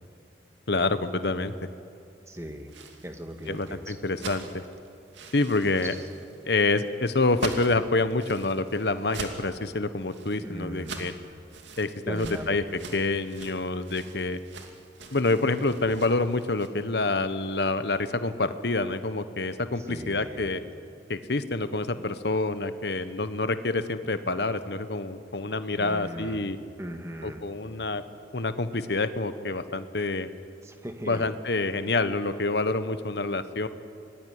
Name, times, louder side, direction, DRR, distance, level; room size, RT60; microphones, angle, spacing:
voice 1, 0.7-1.5 3.5-4.6 5.3-5.9 6.5-11.1 11.8-14.4 15.1-20.6 21.1-26.6 27.2-28.0 28.3-30.3 31.1-33.7, left 2 dB, 65° left, 11 dB, 1.2 m, -27 dB
voice 2, 2.3-2.7 3.0-4.0 5.8-6.0 10.4-11.2 12.1-12.6 15.8-15.9 19.9-20.5 25.7-26.5 26.8-27.4 30.6-31.3, equal, 15° right, 5 dB, 1.8 m, -39 dB
sound 1, 2.5-16.7, right 3 dB, 90° right, 2.5 m, -43 dB
25.0 x 20.0 x 9.6 m, 2.5 s
head